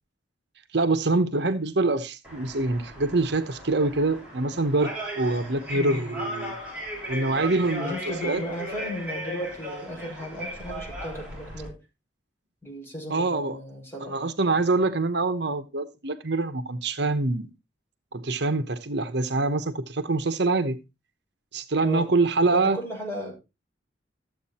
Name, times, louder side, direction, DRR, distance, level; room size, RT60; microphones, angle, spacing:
voice 1, 0.7-6.6 7.1-8.4 13.1-13.6 14.0-17.5 18.1-20.8 21.5-22.8, right 3 dB, 60° right, 1.0 m, -25 dB
sound 1, 2.2-11.7, equal, 5° right, 6.3 m, -37 dB
voice 2, 5.7-6.3 7.8-11.8 12.6-14.2 21.8-22.1 22.5-23.3, equal, 15° left, 6.4 m, -35 dB
14.0 x 8.1 x 4.2 m
head